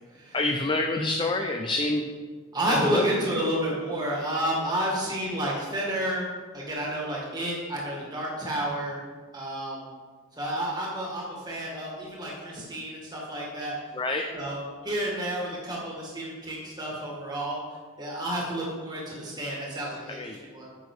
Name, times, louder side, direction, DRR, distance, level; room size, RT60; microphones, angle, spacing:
voice 1, 0.3-2.1 2.7-3.0 14.0-14.3 20.1-20.4, left 2 dB, 20° left, 3 dB, 0.4 m, -27 dB
voice 2, 2.5-6.3 6.5-9.0 9.3-9.8 10.4-13.7 14.3-17.6 18.0-20.7, right 1 dB, 20° right, -4 dB, 1.7 m, -30 dB
9.2 x 6.4 x 4.8 m, 1.5 s
head